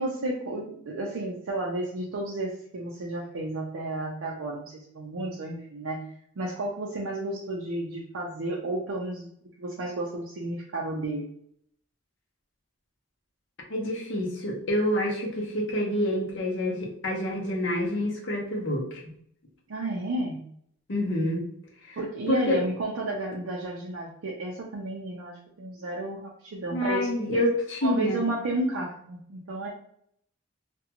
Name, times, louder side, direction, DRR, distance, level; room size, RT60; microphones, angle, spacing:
voice 1, 0.0-6.1 6.4-9.3 9.6-11.3 19.7-20.4 22.0-27.4 27.8-29.7, right 2 dB, 75° right, -3 dB, 0.5 m, -32 dB
voice 2, 13.7-19.0 20.9-21.5 21.8-22.0 22.3-22.6 26.7-28.2, left 1 dB, 60° left, -1 dB, 0.7 m, -27 dB
2.5 x 2.2 x 2.8 m, 0.68 s
head